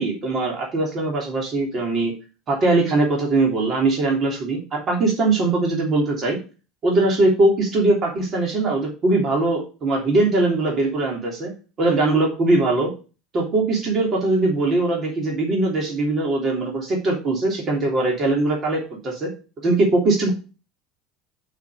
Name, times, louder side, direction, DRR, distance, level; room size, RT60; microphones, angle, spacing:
voice 1, 0.0-2.1 2.5-6.4 6.8-11.5 11.8-12.9 13.3-19.3 19.6-20.3, right 2 dB, 40° right, -1 dB, 3.2 m, -21 dB
5.9 x 5.8 x 6.6 m, 0.34 s
hypercardioid pair, 85°, 0 cm